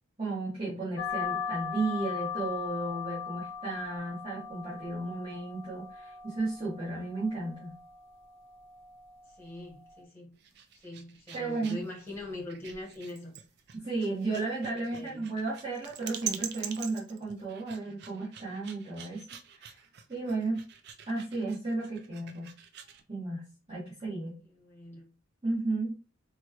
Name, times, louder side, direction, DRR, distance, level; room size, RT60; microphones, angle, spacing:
voice 1, 0.2-7.7 11.3-11.8 13.7-19.2 19.5-19.8 20.1-20.6 21.1-22.5 23.1-24.4 25.4-26.0, right 3 dB, 25° right, 1.5 m, -34 dB
sound 1, 1.0-10.0, left 6 dB, 70° left, 0.7 m, -39 dB
voice 2, 9.3-10.4 10.7-13.4 14.7-15.3 24.4-25.0, left 2 dB, 10° left, 1.2 m, -43 dB
sound 2, 10.3-23.0, right 9 dB, 50° right, 0.4 m, -44 dB
4.4 x 2.2 x 2.9 m
head